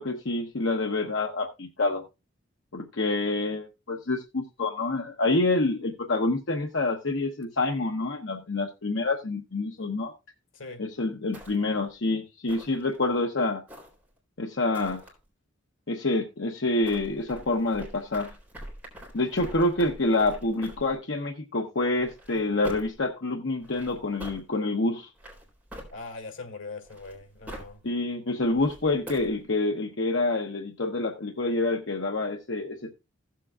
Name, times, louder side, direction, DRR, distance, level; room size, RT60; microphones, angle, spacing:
voice 1, 0.0-2.0 2.7-10.1 10.8-13.6 14.4-15.0 15.9-18.3 19.1-25.1 27.8-32.9, left 2 dB, 70° left, 0.9 m, -27 dB
sound 1, 11.3-11.9 12.5-13.1 13.7-14.2 14.7-15.1 16.8-21.0 22.0-23.0 23.6-24.4 25.1-26.3 26.8-27.8 28.4-29.4, equal, 10° right, 3.9 m, -44 dB
voice 2, 25.9-27.8, left 3 dB, 90° left, 2.1 m, -41 dB
16.0 x 7.5 x 2.4 m
head